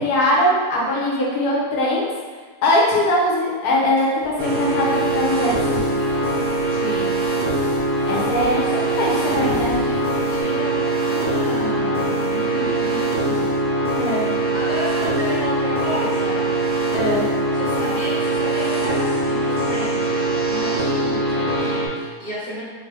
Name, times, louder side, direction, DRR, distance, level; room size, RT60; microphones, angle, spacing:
voice 1, 0.0-2.1 2.6-5.8 8.1-8.7 9.0-9.8 12.5-12.6 14.0-14.3 16.9-17.2, left 1 dB, 75° left, -5 dB, 1.4 m, -21 dB
sound 1, 4.1-10.4, equal, 10° left, 0.7 m, -39 dB
sound 2, 4.4-21.9, right 2 dB, 55° right, 0.5 m, -22 dB
voice 2, 6.7-7.2 8.3-10.0 10.3-13.5 14.5-16.4 17.5-22.6, left 1 dB, 30° left, -9 dB, 1.2 m, -32 dB
3.6 x 2.7 x 3.3 m, 1.5 s
omnidirectional pair, 1.7 m